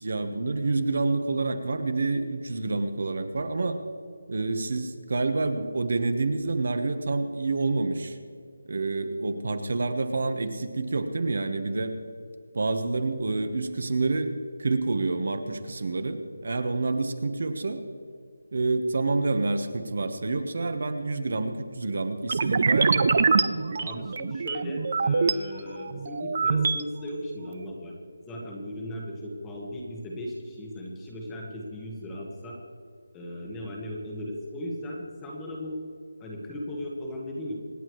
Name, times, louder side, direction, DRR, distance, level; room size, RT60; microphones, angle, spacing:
voice 1, 0.0-3.8 4.3-8.2 8.6-12.0 12.5-14.3 14.6-17.8 18.5-23.2, right 3 dB, 45° right, 8 dB, 1.2 m, -28 dB
sound 1, 22.3-25.3 25.8-26.8, right 5 dB, 30° right, 0.5 m, -24 dB
voice 2, 23.8-27.9 28.2-32.6 33.1-35.8 36.2-37.5, left 1 dB, 5° left, -2 dB, 1.2 m, -37 dB
26.5 x 9.9 x 3.1 m, 2.3 s
figure-of-eight pair, 180°, 0 cm